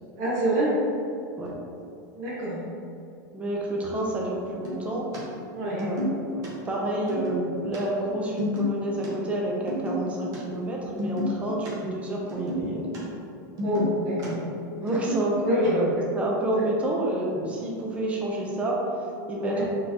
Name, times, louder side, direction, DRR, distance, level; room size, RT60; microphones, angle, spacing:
voice 1, 0.2-0.7 2.1-2.6 5.5-5.8 13.6-14.4 15.5-15.8 19.3-19.6, right 1 dB, 55° right, -7 dB, 1.5 m, -27 dB
sound 1, 1.4-1.5 4.5-5.2 5.5-6.5 6.8-7.8 8.1-9.1 9.5-10.4 10.6-11.7 12.0-13.0 13.2-14.3 14.9-15.3, left 1 dB, 35° right, 1.1 m, -31 dB
voice 2, 3.3-5.2 5.7-6.0 6.3-13.0 14.8-18.8 19.3-19.7, right 1 dB, 10° right, -3 dB, 0.6 m, -28 dB
4.2 x 3.7 x 2.8 m, 2.7 s
supercardioid pair, 150°, 10 cm